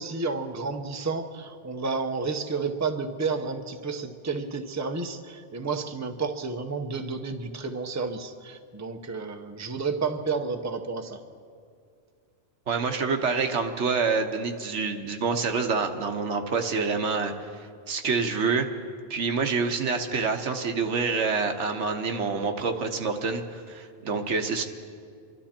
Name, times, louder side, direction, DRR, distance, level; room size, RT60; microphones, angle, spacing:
voice 1, 0.0-11.2, right 4 dB, 15° right, 5 dB, 0.7 m, -31 dB
voice 2, 12.7-17.3 17.9-18.7 19.1-24.6, right 4 dB, 80° right, 5 dB, 1.4 m, -27 dB
26.0 x 12.5 x 4.4 m, 2.2 s
omnidirectional pair, 1.2 m